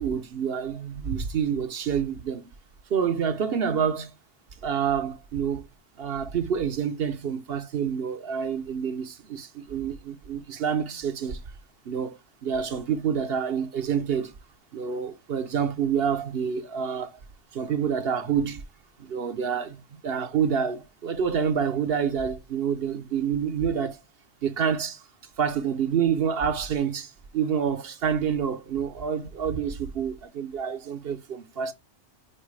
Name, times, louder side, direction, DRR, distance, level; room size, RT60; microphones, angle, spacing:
voice 1, 0.0-2.5 2.9-4.1 4.6-5.7 6.0-11.4 11.9-14.3 14.7-17.2 17.5-18.6 19.0-24.0 24.4-25.0 25.4-31.7, right 7 dB, 55° right, 0.9 m, -28 dB
8.7 x 4.4 x 3.2 m
omnidirectional pair, 1.3 m